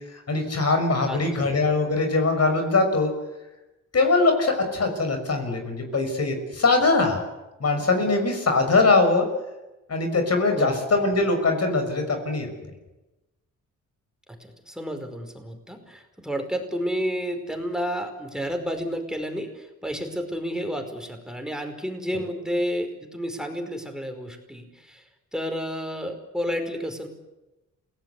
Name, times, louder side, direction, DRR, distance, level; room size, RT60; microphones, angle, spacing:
voice 1, 0.3-3.1 3.9-7.2 7.6-9.3 9.9-12.5, left 3 dB, 50° left, 6 dB, 6.3 m, -22 dB
voice 2, 1.1-1.5 10.5-10.8 14.4-25.0 25.3-27.1, equal, ahead, 6 dB, 5.1 m, -31 dB
27.5 x 18.0 x 8.5 m, 1.0 s
cardioid pair, 75°, 32 cm